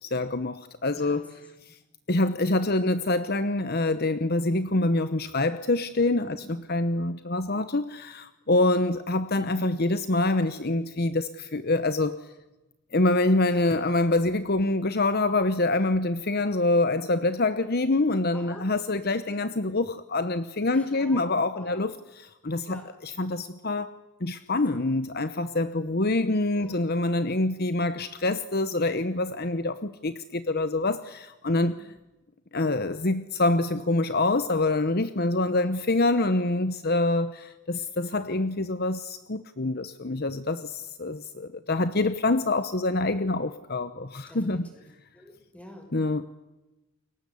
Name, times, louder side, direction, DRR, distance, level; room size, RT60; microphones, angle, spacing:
voice 1, 0.0-1.8 2.1-12.3 12.9-23.9 24.2-31.7 32.5-44.7 45.9-46.3, left 2 dB, 45° left, 1.0 m, -26 dB
voice 2, 0.9-1.2 6.2-6.5 18.3-18.6 20.7-21.3 21.5-21.9 22.7-22.8 26.5-26.8 28.0-28.1 31.5-31.8 44.3-44.8 45.1-45.9, equal, 5° left, 6.1 m, -47 dB
29.5 x 23.0 x 8.4 m
head